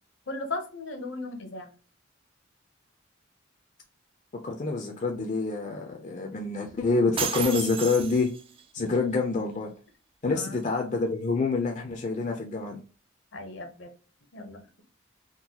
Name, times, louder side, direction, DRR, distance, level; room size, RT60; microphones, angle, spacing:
voice 1, 0.3-1.7 10.3-10.6 13.3-13.9 14.3-14.8, left 2 dB, 70° left, 5 dB, 0.8 m, -37 dB
voice 2, 4.4-8.3 8.7-9.7 10.2-12.8, left 3 dB, 35° left, 2 dB, 0.4 m, -27 dB
sound 1, 7.2-8.6, right 6 dB, 25° right, 0.3 m, -32 dB
3.8 x 2.2 x 2.8 m, 0.36 s
head